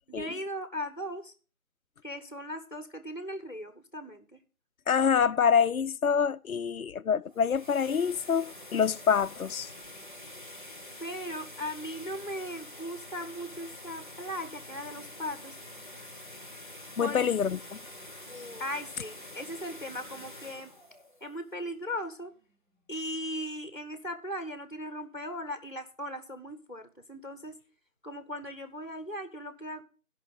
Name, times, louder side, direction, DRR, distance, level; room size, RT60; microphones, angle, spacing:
voice 1, 0.1-1.3 2.0-4.4 11.0-15.5 17.0-17.3 18.3-20.7 21.2-22.3 22.9-27.6 28.0-29.8, equal, 35° left, 1.0 m, -38 dB
voice 2, 4.9-9.7 17.0-17.8, left 7 dB, 80° left, 0.5 m, -26 dB
sound 1, 7.2-22.1, left 1 dB, 35° right, 1.0 m, -47 dB
14.5 x 5.7 x 5.4 m
figure-of-eight pair, 175°, 42 cm